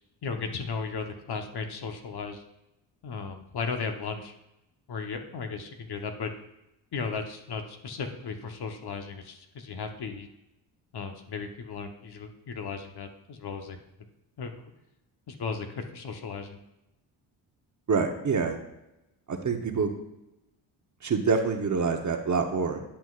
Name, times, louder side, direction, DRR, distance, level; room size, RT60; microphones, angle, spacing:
voice 1, 0.2-2.4 3.0-4.3 4.9-6.3 6.9-10.3 10.9-13.8 14.4-14.7 15.3-16.6, left 5 dB, 50° left, 5 dB, 1.1 m, -35 dB
voice 2, 17.9-18.6 19.3-19.9 21.0-22.8, right 5 dB, 35° right, 5 dB, 1.0 m, -26 dB
10.5 x 5.9 x 2.5 m, 0.90 s
supercardioid pair, 65°, 49 cm